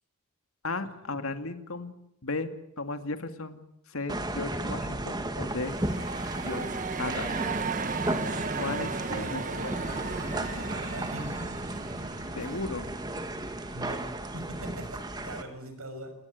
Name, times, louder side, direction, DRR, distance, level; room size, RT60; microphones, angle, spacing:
voice 1, 0.6-1.9 2.2-2.5 2.8-3.6 3.9-5.8 6.4-6.7 7.0-7.4 8.6-9.7 12.4-12.9, left 3 dB, 75° left, 8 dB, 2.2 m, -35 dB
sound 1, 4.1-15.4, right 1 dB, 20° right, 1.8 m, -35 dB
sound 2, 5.4-14.1, right 4 dB, 35° right, 1.0 m, -36 dB
sound 3, 7.7-12.7, left 2 dB, 30° left, 7.7 m, -50 dB
voice 2, 9.0-9.6 10.7-11.5 13.7-16.1, right 1 dB, 85° right, 8 dB, 6.5 m, -41 dB
28.0 x 19.0 x 9.3 m, 0.82 s
head